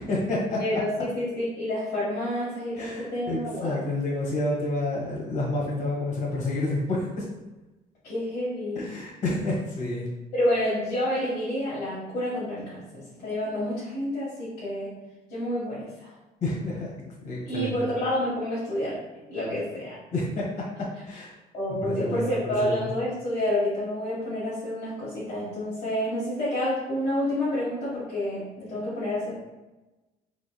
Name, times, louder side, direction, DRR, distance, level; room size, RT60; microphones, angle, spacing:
voice 1, 0.0-0.6 2.7-7.3 8.7-10.1 16.4-16.9 17.2-17.8 20.1-21.3 21.9-22.4 22.6-22.8, left 2 dB, 45° left, -4 dB, 1.3 m, -29 dB
voice 2, 0.6-3.7 8.0-8.8 10.3-14.9 15.3-16.1 17.5-19.0 19.3-20.0 21.5-29.3, left 1 dB, 75° left, -10 dB, 1.4 m, -29 dB
4.0 x 3.0 x 2.2 m, 1.1 s
cardioid pair, 110°, 17 cm